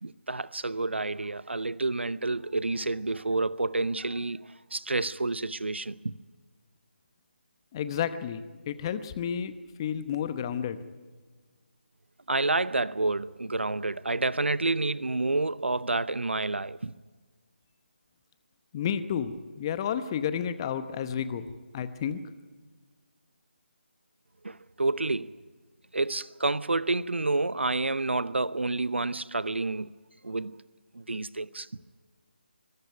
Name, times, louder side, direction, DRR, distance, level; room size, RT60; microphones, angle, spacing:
voice 1, 0.0-6.1 12.3-16.9 24.4-25.4 25.9-30.0 30.2-30.6 30.9-31.7, right 2 dB, 80° right, 0.7 m, -29 dB
voice 2, 7.7-9.5 9.8-10.8 18.7-21.5 21.7-22.2, left 8 dB, 25° left, 0.9 m, -31 dB
24.0 x 13.5 x 9.3 m
figure-of-eight pair, 155°, 6 cm